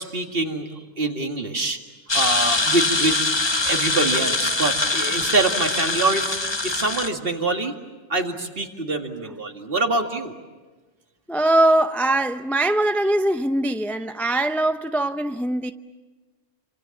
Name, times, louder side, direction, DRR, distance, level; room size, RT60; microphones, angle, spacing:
voice 1, 0.0-1.8 2.1-6.4 6.6-7.7 8.1-10.3, right 2 dB, 45° right, 2.3 m, -25 dB
sound 1, 2.1-7.1, left 2 dB, 20° left, 1.1 m, -23 dB
voice 2, 11.3-15.7, right 1 dB, ahead, 0.4 m, -21 dB
28.5 x 26.5 x 7.2 m
omnidirectional pair, 1.3 m